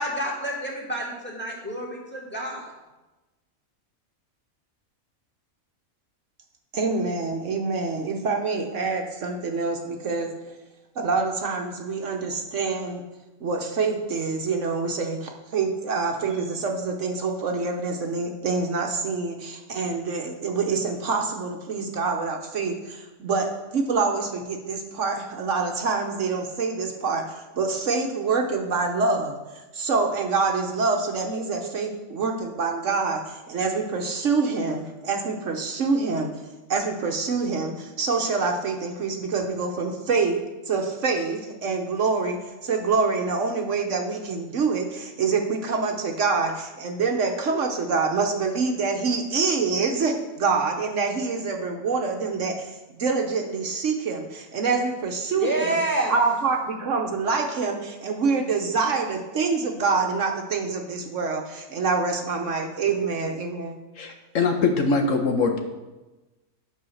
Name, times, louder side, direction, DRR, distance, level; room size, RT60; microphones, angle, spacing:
voice 1, 0.0-2.7 55.4-56.1, right 1 dB, 5° left, -3 dB, 2.2 m, -28 dB
voice 2, 6.7-10.3 11.0-13.0 13.4-36.3 36.7-40.4 40.7-55.8 56.1-63.8, right 4 dB, 60° right, 3 dB, 1.1 m, -26 dB
voice 3, 64.0-65.6, left 4 dB, 65° left, 4 dB, 1.2 m, -22 dB
8.8 x 5.5 x 6.3 m, 1.1 s
omnidirectional pair, 1.5 m